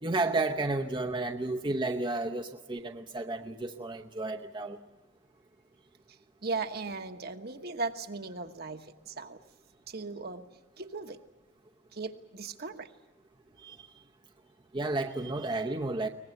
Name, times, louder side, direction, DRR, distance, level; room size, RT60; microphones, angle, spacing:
voice 1, 0.0-4.8 13.6-13.9 14.7-16.1, right 2 dB, 25° right, 2 dB, 0.8 m, -32 dB
voice 2, 6.4-9.4 9.9-10.4 10.8-11.2 11.9-12.9, right 3 dB, 55° right, 6 dB, 1.3 m, -37 dB
23.0 x 19.5 x 8.0 m, 1.2 s
head